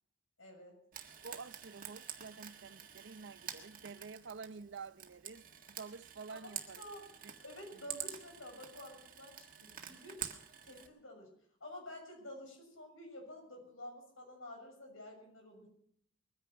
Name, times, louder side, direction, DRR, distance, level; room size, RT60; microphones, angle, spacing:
voice 1, 0.4-0.8 6.3-7.0 7.4-10.2 10.6-11.3 11.6-15.7, left 1 dB, 85° left, 6.9 m, -50 dB
Frying (food), 0.9-10.9, right 9 dB, 45° right, 1.8 m, -48 dB
voice 2, 1.2-6.9 7.2-7.3, right 4 dB, 60° right, 0.6 m, -49 dB
21.5 x 10.5 x 6.1 m
head